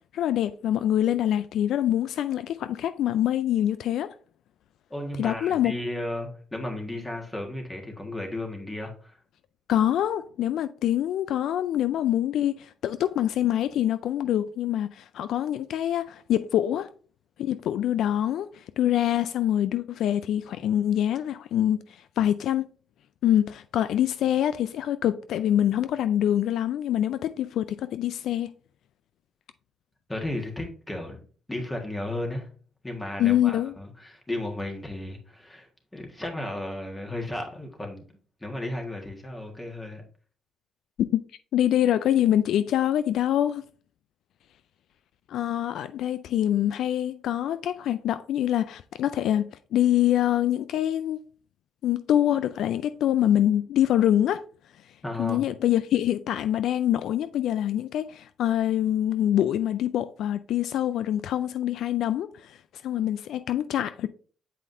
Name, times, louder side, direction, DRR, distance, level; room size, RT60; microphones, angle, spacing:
voice 1, 0.1-4.1 5.2-5.7 9.7-16.9 17.4-21.8 22.2-22.7 23.2-28.5 33.2-33.7 41.0-41.2 41.5-43.6 45.3-51.2 51.8-54.4 55.2-62.6 62.8-64.1, left 11 dB, 75° left, 0.3 m, -25 dB
voice 2, 4.9-9.2 30.1-32.5 32.8-38.0 38.4-40.0 55.0-55.4, left 1 dB, 15° left, 1.6 m, -34 dB
7.7 x 4.8 x 2.7 m
cardioid pair, 90°, 0 cm